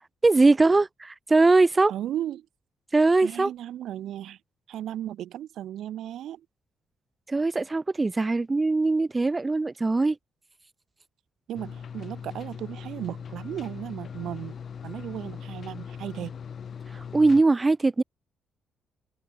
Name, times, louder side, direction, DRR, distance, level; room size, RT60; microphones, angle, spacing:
voice 1, 0.2-1.9 2.9-3.5 7.3-10.2 16.9-18.0, right 3 dB, 20° right, 3.4 m, -21 dB
voice 2, 1.9-2.5 3.2-4.4 4.7-6.5 11.5-14.5 14.8-16.4, right 11 dB, 75° right, 7.1 m, -35 dB
sound 1, 11.5-17.4, left 7 dB, 50° left, 5.8 m, -40 dB
cardioid pair, 90°, 0 cm